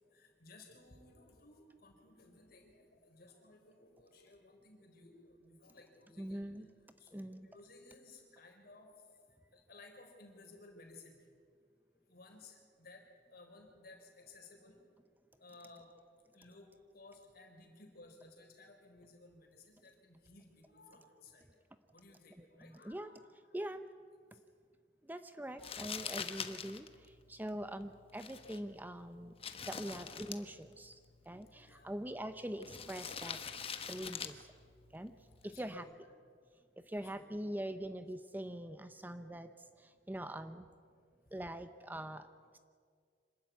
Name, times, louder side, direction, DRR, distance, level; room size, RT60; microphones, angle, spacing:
voice 1, 0.1-6.4 7.0-8.9 9.5-11.1 12.1-13.0 13.3-14.8 15.4-15.9 16.3-16.7 16.9-21.5 21.9-23.6 25.5-26.1 28.0-28.1 31.3-32.2 35.4-36.2 36.9-37.3, left 2 dB, 55° left, 2 dB, 4.4 m, -58 dB
voice 2, 6.2-6.7 7.1-7.5 22.4-23.1 23.5-23.9 25.0-29.3 29.7-31.0 31.3-33.4 33.9-34.5 34.9-35.1 35.4-35.9 36.9-39.5 39.8-40.7 41.3-42.3, right 1 dB, 10° right, 10 dB, 0.6 m, -43 dB
Crumpling crinkling, 25.6-35.8, left 6 dB, 30° left, 1.2 m, -46 dB
26.0 x 13.0 x 9.4 m, 2.1 s
head